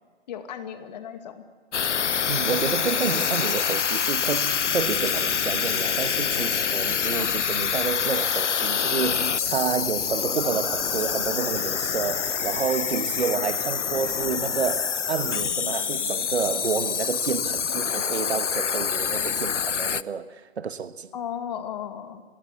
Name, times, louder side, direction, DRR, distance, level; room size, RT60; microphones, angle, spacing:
voice 1, 0.3-1.4 7.1-7.4 21.1-22.2, left 8 dB, 35° left, 2.2 m, -35 dB
sound 1, 1.7-20.0, left 7 dB, 85° left, 0.8 m, -26 dB
voice 2, 2.3-21.1, right 6 dB, 65° right, 1.4 m, -29 dB
25.5 x 20.5 x 8.4 m
hypercardioid pair, 150°, 35 cm